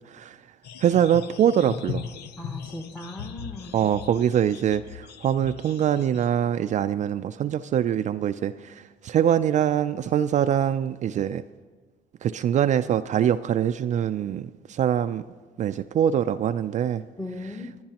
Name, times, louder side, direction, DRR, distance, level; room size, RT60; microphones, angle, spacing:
sound 1, 0.6-6.3, left 8 dB, 75° left, 0.7 m, -39 dB
voice 1, 0.8-2.0 3.7-8.7 9.0-11.4 12.2-15.2 15.6-17.0, right 9 dB, 45° right, 10 dB, 0.4 m, -23 dB
voice 2, 2.4-3.8 17.2-17.8, left 1 dB, 5° left, 3 dB, 1.0 m, -37 dB
26.0 x 10.0 x 2.9 m, 1.4 s
cardioid pair, 110°, 17 cm